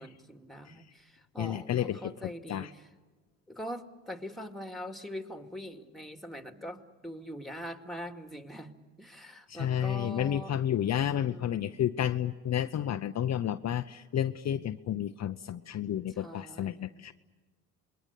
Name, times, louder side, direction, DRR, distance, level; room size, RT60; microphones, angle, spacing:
voice 1, 0.0-2.9 3.5-8.7 9.0-10.5 11.2-11.8 16.1-17.1, equal, ahead, 6 dB, 2.4 m, -43 dB
voice 2, 1.4-2.1 2.5-2.7 9.5-17.1, left 10 dB, 45° left, 9 dB, 0.8 m, -31 dB
27.5 x 22.0 x 8.4 m, 1.3 s
supercardioid pair, 75°, 38 cm